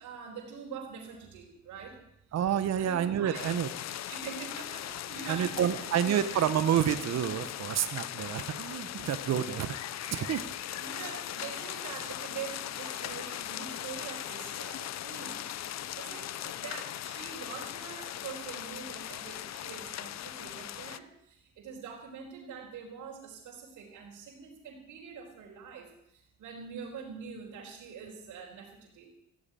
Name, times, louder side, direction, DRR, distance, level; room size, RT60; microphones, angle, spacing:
voice 1, 0.0-2.0 2.8-3.5 4.1-6.4 10.8-29.1, right 6 dB, 80° right, -2 dB, 4.4 m, -44 dB
voice 2, 2.3-3.7 5.3-9.8 10.1-10.5 12.9-13.1, right 9 dB, 60° right, 11 dB, 1.0 m, -29 dB
sound 1, 3.3-21.0, left 12 dB, 60° left, 0.7 m, -39 dB
16.0 x 8.8 x 9.0 m, 0.79 s
cardioid pair, 90°, 30 cm